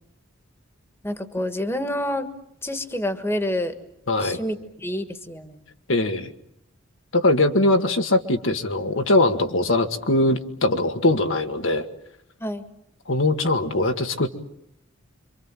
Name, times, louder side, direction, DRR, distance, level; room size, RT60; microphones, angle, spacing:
voice 1, 1.0-2.3 2.6-3.7 4.2-5.6 12.4-12.6, left 1 dB, 10° left, 8 dB, 1.5 m, -28 dB
voice 2, 4.1-4.4 5.9-6.3 7.1-11.9 13.1-14.3, left 2 dB, 80° left, 6 dB, 1.9 m, -21 dB
27.0 x 25.0 x 7.6 m, 0.75 s
head